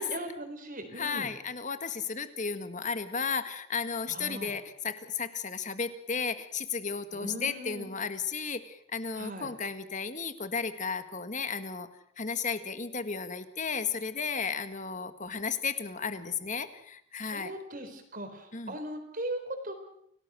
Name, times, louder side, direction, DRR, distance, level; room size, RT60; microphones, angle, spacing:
voice 1, 0.0-1.3 4.1-4.5 7.1-7.9 9.1-9.5 17.2-19.7, right 1 dB, 40° right, 6 dB, 4.2 m, -39 dB
voice 2, 0.9-11.9 12.2-17.5 18.5-18.7, left 5 dB, 35° left, 10 dB, 1.7 m, -34 dB
29.0 x 18.0 x 6.4 m, 0.69 s
head